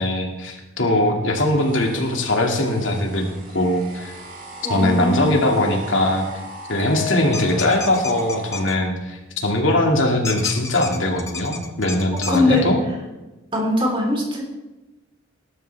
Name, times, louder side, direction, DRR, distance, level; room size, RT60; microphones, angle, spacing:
voice 1, 0.0-3.3 3.5-4.1 4.7-6.2 6.7-12.8, left 1 dB, 70° left, 2 dB, 2.2 m, -21 dB
sound 1, 1.3-8.6, right 1 dB, 45° right, 4.7 m, -39 dB
voice 2, 4.6-5.4 12.1-12.7 13.5-14.4, left 2 dB, 25° right, -1 dB, 3.7 m, -21 dB
sound 2, 6.8-8.0, left 7 dB, 85° right, 1.8 m, -32 dB
sound 3, 7.3-8.7 10.2-12.4, left 4 dB, 15° left, 1.0 m, -32 dB
19.0 x 12.5 x 3.4 m, 1.1 s
head